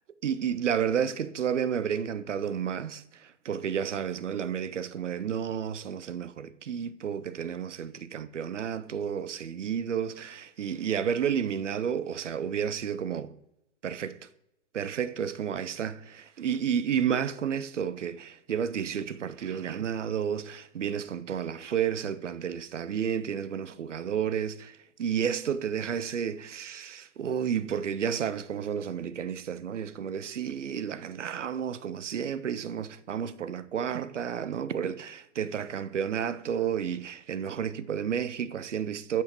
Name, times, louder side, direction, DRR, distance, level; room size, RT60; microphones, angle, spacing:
voice 1, 0.2-13.4 13.8-14.3 14.7-39.2, right 8 dB, 80° right, 0.5 m, -31 dB
8.4 x 5.9 x 2.9 m
figure-of-eight pair, 115°, 36 cm